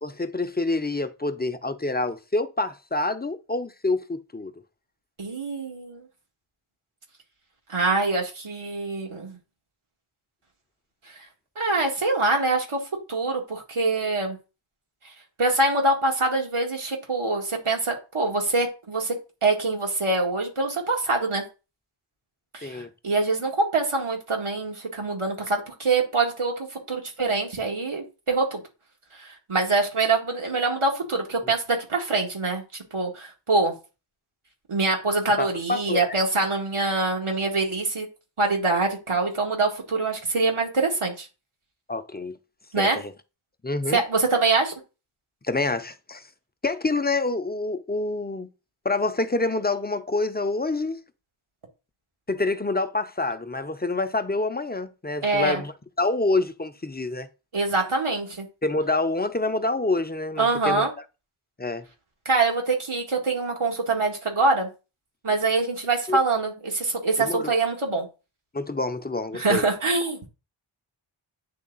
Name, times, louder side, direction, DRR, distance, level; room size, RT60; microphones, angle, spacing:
voice 1, 0.0-4.5 22.6-22.9 35.4-36.0 41.9-42.4 42.8-43.1 43.6-44.0 45.4-46.2 46.6-48.5 48.8-51.0 52.3-57.3 58.6-60.9 61.6-61.9 66.1-66.2 67.2-67.5 68.5-69.7, left 2 dB, 20° left, 0.6 m, -27 dB
voice 2, 5.2-6.1 7.7-9.4 11.1-11.2 11.6-12.8 13.1-14.4 15.4-19.2 19.4-21.4 22.5-28.6 29.2-33.7 34.7-38.1 38.4-41.3 42.7-43.0 43.9-44.8 55.2-55.6 57.5-58.5 60.4-60.9 62.3-64.7 65.2-68.1 69.3-70.3, right 3 dB, 80° right, 2.0 m, -24 dB
9.5 x 3.4 x 3.9 m
wide cardioid pair, 55°, 49 cm